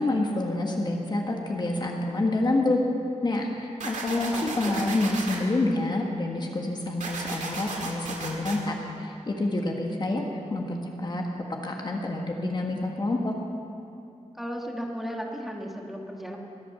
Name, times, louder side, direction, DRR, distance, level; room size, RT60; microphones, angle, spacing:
voice 1, 0.0-2.8 3.2-10.2 10.5-11.2 11.6-13.3, left 2 dB, 35° left, 1 dB, 1.4 m, -27 dB
sound 1, 3.8-5.4 7.0-8.6, right 3 dB, 85° right, 2.0 m, -34 dB
voice 2, 4.1-5.0 14.3-16.4, equal, ahead, -1 dB, 1.5 m, -35 dB
21.0 x 8.6 x 6.9 m, 2.6 s
wide cardioid pair, 160°, 12 cm